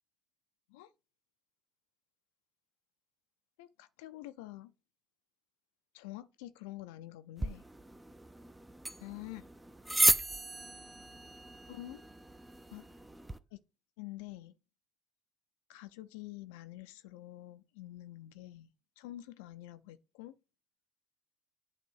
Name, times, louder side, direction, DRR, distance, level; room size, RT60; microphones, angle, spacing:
voice 1, 3.6-4.7 5.9-7.6 9.0-9.5 11.7-12.0 12.7-12.9 13.5-13.6 14.0-14.5 15.7-20.3, left 15 dB, 80° left, 0.4 m, -47 dB
sound 1, 7.4-13.4, right 1 dB, 10° right, 0.6 m, -34 dB
8.5 x 3.0 x 4.7 m
hypercardioid pair, 60°, 0 cm